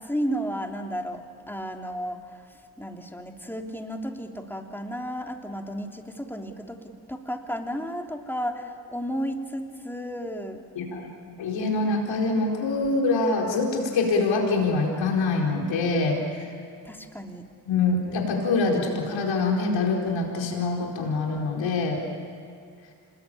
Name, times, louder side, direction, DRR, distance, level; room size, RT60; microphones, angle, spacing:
voice 1, 0.0-10.7 16.8-17.5, equal, 5° left, 2 dB, 3.1 m, -33 dB
voice 2, 10.8-16.5 17.7-22.0, left 3 dB, 85° left, 0 dB, 4.6 m, -25 dB
27.0 x 21.0 x 8.7 m, 2.4 s
supercardioid pair, 55°, 44 cm